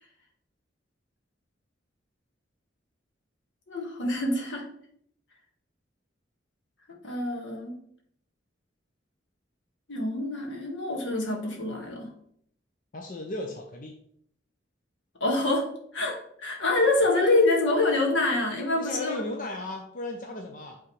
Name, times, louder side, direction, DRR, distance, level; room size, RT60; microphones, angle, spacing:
voice 1, 3.7-4.6 7.0-7.7 9.9-12.1 15.2-15.7 15.9-19.2, left 2 dB, 85° left, 0 dB, 1.7 m, -26 dB
voice 2, 12.9-13.9 18.7-20.8, left 2 dB, 45° left, 2 dB, 0.7 m, -35 dB
8.5 x 3.7 x 3.2 m, 0.67 s
head